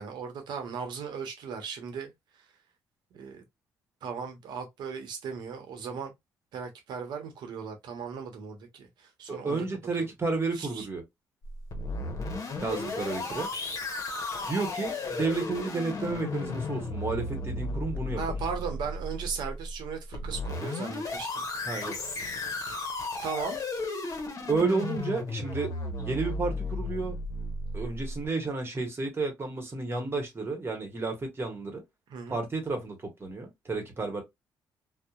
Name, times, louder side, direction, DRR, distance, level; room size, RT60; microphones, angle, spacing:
voice 1, 0.0-2.1 3.1-3.4 4.0-6.1 6.5-9.7 10.0-10.1 10.5-10.9 18.2-21.5 23.2-23.6 32.1-32.4, right 6 dB, 70° right, 0.8 m, -37 dB
voice 2, 9.3-11.0 12.6-13.5 14.5-18.2 21.6-22.0 24.5-25.7 26.0-27.2 27.7-31.8 32.3-34.2, right 3 dB, 30° right, 1.1 m, -31 dB
sound 1, 11.4-28.3, left 2 dB, 45° left, 0.8 m, -34 dB
2.7 x 2.1 x 2.3 m
supercardioid pair, 65°, 8 cm